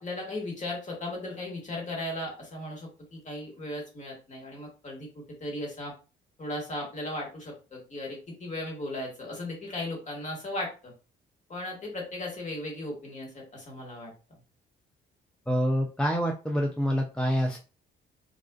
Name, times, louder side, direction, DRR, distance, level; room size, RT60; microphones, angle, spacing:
voice 1, 0.0-5.9 6.4-10.9 11.5-14.1, left 1 dB, 40° left, -1 dB, 1.3 m, -36 dB
voice 2, 15.5-17.6, equal, 5° left, 1 dB, 0.3 m, -26 dB
2.4 x 2.3 x 2.2 m, 0.33 s
cardioid pair, 90°, 20 cm